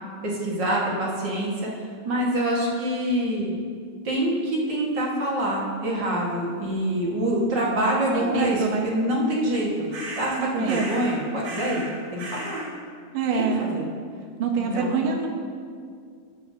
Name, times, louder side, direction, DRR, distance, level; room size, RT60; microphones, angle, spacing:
voice 1, 0.2-1.7 2.0-3.6 4.0-11.9 12.1-12.6 13.3-13.9 14.6-15.1, right 1 dB, 45° right, -4 dB, 1.7 m, -26 dB
voice 2, 8.1-8.9 10.4-10.9 13.1-13.7 14.4-15.3, right 6 dB, 85° right, 1 dB, 1.1 m, -26 dB
sound 1, 9.9-10.4 10.6-11.1 11.4-11.9 12.2-12.7, right 2 dB, 70° right, 4.2 m, -35 dB
19.5 x 7.3 x 2.7 m, 2.2 s
omnidirectional pair, 3.5 m